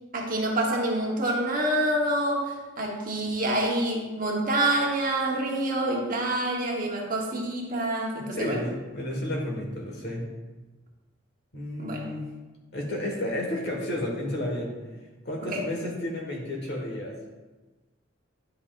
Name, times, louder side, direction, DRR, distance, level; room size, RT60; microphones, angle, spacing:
voice 1, 0.1-8.6 11.8-12.0 15.5-15.6, right 1 dB, 45° right, -1 dB, 1.2 m, -27 dB
voice 2, 8.3-10.3 11.5-12.3 12.7-14.8 15.2-17.2, left 1 dB, 55° left, -1 dB, 1.6 m, -31 dB
9.7 x 5.6 x 2.5 m, 1.2 s
head